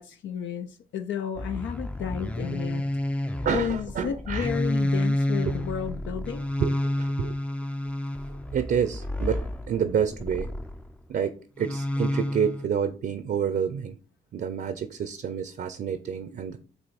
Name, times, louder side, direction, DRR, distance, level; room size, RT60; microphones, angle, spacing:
voice 1, 0.0-2.8 3.5-6.5, left 8 dB, 70° left, 0.6 m, -32 dB
sound 1, 1.4-10.9 11.6-12.7, left 1 dB, 5° left, 0.5 m, -30 dB
voice 2, 3.4-4.5 6.6-7.4 8.5-10.5 11.1-14.0 14.3-16.6, right 7 dB, 50° right, 0.6 m, -28 dB
8.1 x 2.8 x 4.3 m
cardioid pair, 90°, 20 cm